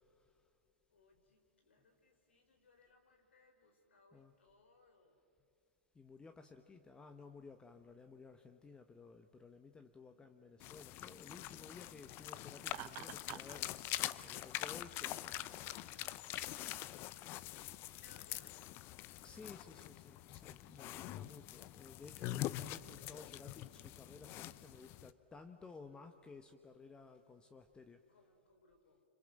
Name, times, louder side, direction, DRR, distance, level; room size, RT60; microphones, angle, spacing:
voice 1, 0.9-5.2 18.0-18.8 25.8-26.2 28.1-29.0, left 3 dB, 80° left, 3 dB, 4.6 m, -69 dB
voice 2, 5.9-13.7 14.2-15.3 15.7-16.1 19.2-28.0, left 4 dB, 15° left, 7 dB, 1.2 m, -56 dB
sound 1, 10.6-25.1, left 15 dB, 35° left, 0.8 m, -45 dB
Laughter, 12.7-13.6, right 18 dB, 40° right, 0.8 m, -48 dB
29.0 x 26.0 x 7.6 m, 2.4 s
hypercardioid pair, 110°, 6 cm